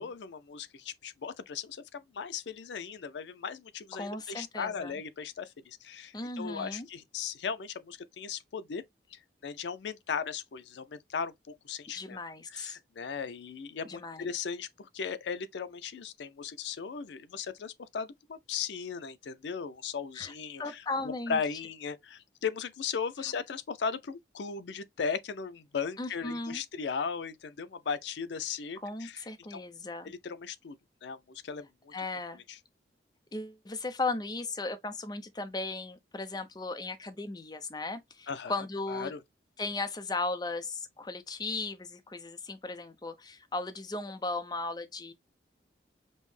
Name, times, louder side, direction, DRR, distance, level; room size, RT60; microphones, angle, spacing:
voice 1, 0.0-8.8 9.1-11.3 11.6-12.2 12.5-20.8 21.3-29.6 30.0-31.9 32.3-32.6 38.3-38.6 38.9-39.2, left 6 dB, 80° left, 0.4 m, -37 dB
voice 2, 3.9-4.9 6.1-6.9 11.9-12.8 13.8-14.2 20.2-20.3 20.6-21.4 26.0-26.6 28.8-30.1 31.9-32.4 33.3-39.1 39.6-45.1, left 3 dB, 20° left, 0.5 m, -36 dB
5.3 x 2.0 x 3.1 m
head